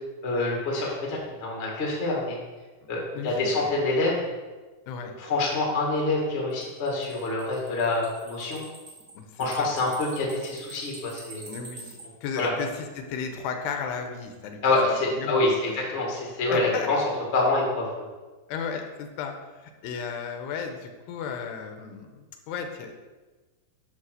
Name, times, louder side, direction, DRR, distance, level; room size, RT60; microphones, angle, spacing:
voice 1, 0.2-2.4 2.9-4.2 5.2-8.6 9.4-11.5 12.4-12.5 14.6-17.0 17.3-17.9, left 2 dB, 40° left, -2 dB, 0.9 m, -26 dB
voice 2, 3.1-3.7 4.9-5.1 9.1-9.7 11.5-15.9 16.5-16.9 18.5-22.9, left 6 dB, 90° left, 5 dB, 2.9 m, -35 dB
sound 1, 6.5-12.0, right 2 dB, 40° right, 1.2 m, -46 dB
10.0 x 4.0 x 6.5 m, 1.3 s
omnidirectional pair, 4.8 m